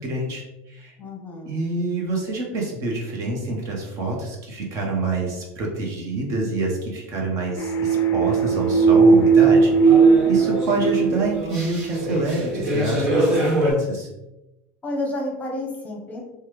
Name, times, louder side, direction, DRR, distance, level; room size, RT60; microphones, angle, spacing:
voice 1, 0.0-0.9 1.4-10.0 10.3-14.1, right 2 dB, 50° right, -1 dB, 0.9 m, -27 dB
voice 2, 1.0-1.6 14.8-16.2, left 1 dB, 20° left, -1 dB, 0.8 m, -30 dB
sound 1, 7.6-12.1, right 5 dB, 40° left, 0.4 m, -17 dB
sound 2, 9.5-13.7, equal, 75° right, 1.2 m, -25 dB
3.2 x 2.3 x 3.0 m, 0.96 s
supercardioid pair, 120°, 7 cm